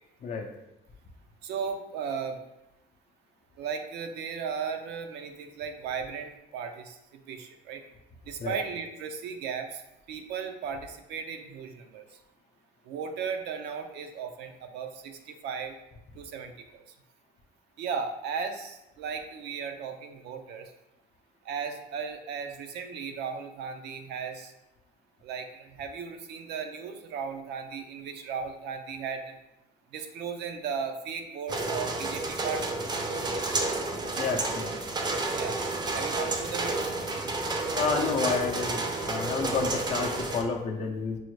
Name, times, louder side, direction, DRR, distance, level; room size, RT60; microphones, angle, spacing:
voice 1, 1.4-2.4 3.6-7.8 8.2-9.8 10.1-12.2 12.8-15.8 16.2-16.9 17.8-20.7 21.4-24.5 25.2-29.4 29.9-32.8 35.3-35.6 35.9-37.0, right 6 dB, 80° right, 5 dB, 0.5 m, -36 dB
sound 1, 31.5-40.4, right 2 dB, 25° right, 0.5 m, -30 dB
voice 2, 34.2-34.7 37.8-41.2, left 5 dB, 40° left, 2 dB, 0.5 m, -30 dB
5.3 x 2.1 x 3.1 m, 0.91 s
cardioid pair, 110°, 17 cm